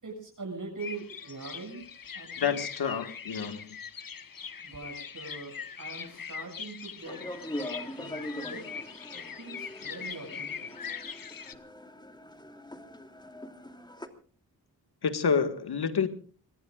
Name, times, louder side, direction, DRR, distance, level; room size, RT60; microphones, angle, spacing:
voice 1, 0.0-1.8 2.1-2.6 4.6-7.2 7.6-8.7 9.1-10.7, right 3 dB, 50° right, 1 dB, 7.5 m, -42 dB
sound 1, 0.8-11.5, left 6 dB, 60° left, 1.4 m, -41 dB
voice 2, 2.4-3.8 15.0-16.1, left 6 dB, 80° left, 9 dB, 1.9 m, -28 dB
sound 2, 7.0-14.1, left 1 dB, 10° left, 2.9 m, -42 dB
25.0 x 21.5 x 2.5 m, 0.41 s
cardioid pair, 45°, 38 cm